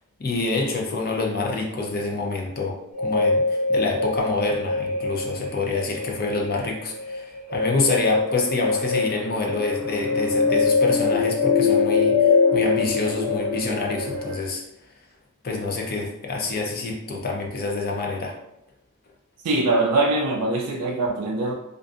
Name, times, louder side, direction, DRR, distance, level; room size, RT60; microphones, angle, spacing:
voice 1, 0.2-14.6 15.4-18.3, left 3 dB, 40° left, 0 dB, 0.5 m, -27 dB
sound 1, 2.9-14.4, left 4 dB, 5° right, 0.8 m, -23 dB
voice 2, 19.4-21.5, right 2 dB, 85° right, -1 dB, 0.4 m, -22 dB
2.5 x 2.5 x 2.4 m, 0.84 s
head